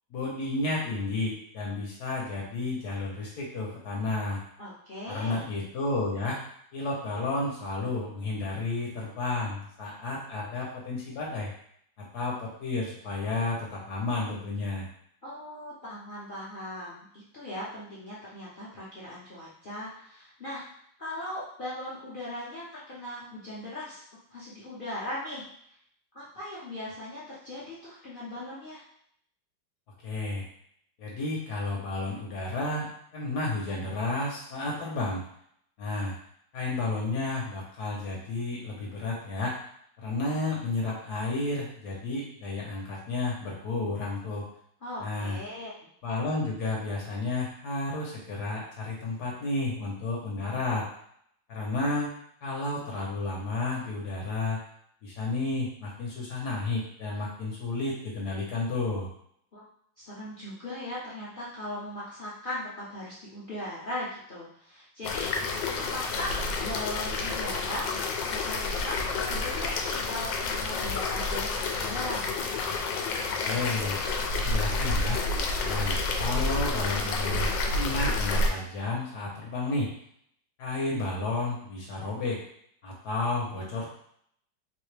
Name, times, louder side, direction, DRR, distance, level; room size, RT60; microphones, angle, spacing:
voice 1, 0.1-4.4 5.1-6.4 6.7-11.5 12.1-14.9 30.0-30.5 31.0-35.2 35.8-36.1 36.5-39.5 40.0-44.5 45.0-45.4 46.0-50.9 51.5-52.1 52.4-54.6 55.0-59.1 73.4-74.0 74.3-75.2 75.6-79.9 80.6-82.4 82.8-83.9, left 2 dB, 65° left, -3 dB, 1.3 m, -31 dB
voice 2, 4.6-5.5 15.2-20.6 21.0-24.0 24.3-25.4 26.1-28.8 44.8-45.7 59.5-59.7 60.0-67.9 68.3-69.0 69.3-72.3, left 1 dB, 45° left, -8 dB, 0.7 m, -39 dB
sound 1, 65.0-78.5, left 3 dB, 85° left, 1.3 m, -29 dB
3.2 x 2.8 x 3.2 m, 0.67 s
omnidirectional pair, 2.0 m